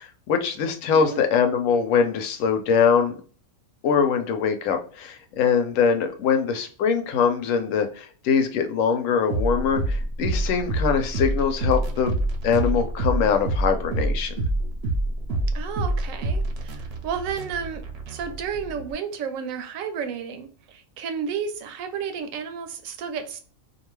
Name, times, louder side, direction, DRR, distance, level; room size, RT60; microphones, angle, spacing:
voice 1, 0.0-3.2 3.8-14.4, left 6 dB, 80° left, 6 dB, 1.0 m, -23 dB
voice 2, 0.9-1.2 6.3-6.4 15.5-23.4, right 6 dB, 80° right, 7 dB, 1.0 m, -32 dB
sound 1, 9.3-18.9, right 2 dB, 60° right, 0.8 m, -27 dB
2.6 x 2.2 x 3.0 m, 0.41 s
omnidirectional pair, 1.4 m